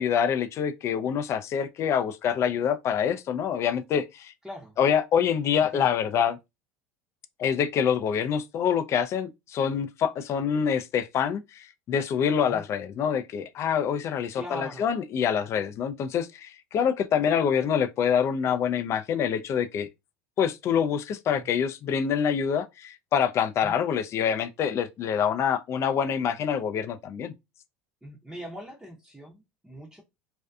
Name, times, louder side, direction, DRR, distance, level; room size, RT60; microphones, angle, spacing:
voice 1, 0.0-4.3 4.8-6.4 7.4-19.9 20.4-27.3, left 8 dB, 40° left, 0.3 m, -26 dB
voice 2, 4.4-4.8 5.5-5.9 12.4-12.6 14.3-14.9 21.3-21.5 23.6-23.8 28.0-30.0, equal, 5° right, 0.6 m, -41 dB
2.5 x 2.3 x 2.3 m
hypercardioid pair, 80°, 7 cm